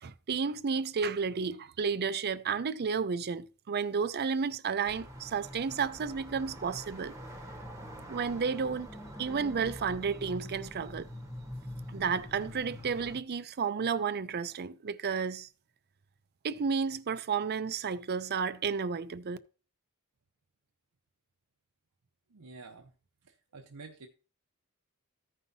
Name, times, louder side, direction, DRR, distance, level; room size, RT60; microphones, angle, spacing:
voice 1, 0.0-7.1 8.1-8.9 9.2-11.1 11.9-15.5 16.4-19.4, right 5 dB, 45° right, 0.5 m, -32 dB
sound 1, 4.9-13.2, equal, 15° right, 1.0 m, -45 dB
voice 2, 22.3-22.9 23.2-24.1, right 3 dB, 80° right, 0.8 m, -49 dB
14.5 x 5.5 x 2.7 m
head